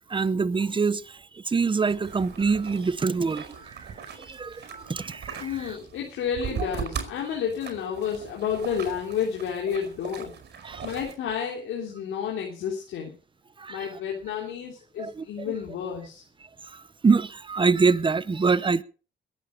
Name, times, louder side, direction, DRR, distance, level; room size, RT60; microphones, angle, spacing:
voice 1, 0.0-5.8 10.6-10.9 13.6-13.9 15.0-15.5 16.6-18.8, right 4 dB, 25° right, 0.9 m, -25 dB
sound 1, 1.9-11.1, right 6 dB, 55° right, 5.1 m, -39 dB
voice 2, 5.4-10.3 10.8-13.1 13.7-16.2, left 7 dB, 85° left, 3.3 m, -31 dB
21.5 x 8.9 x 5.0 m
cardioid pair, 90°, 20 cm